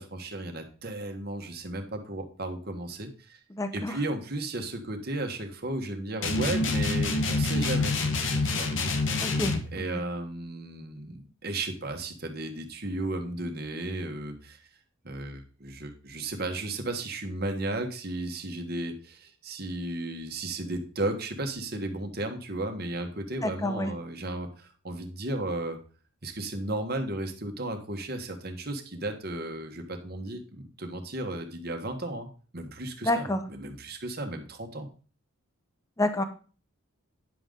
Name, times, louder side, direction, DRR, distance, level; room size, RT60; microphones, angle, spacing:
voice 1, 0.0-3.4 3.7-8.0 8.4-8.7 9.7-14.6 15.0-25.8 26.2-32.3 32.5-34.9, right 2 dB, 50° right, 5 dB, 1.5 m, -34 dB
voice 2, 3.5-4.0 9.2-10.0 23.4-23.9 33.0-33.4 36.0-36.2, left 1 dB, 15° left, 8 dB, 0.8 m, -29 dB
sound 1, 6.2-9.7, left 3 dB, 60° left, 1.2 m, -27 dB
10.0 x 6.9 x 3.8 m, 0.37 s
head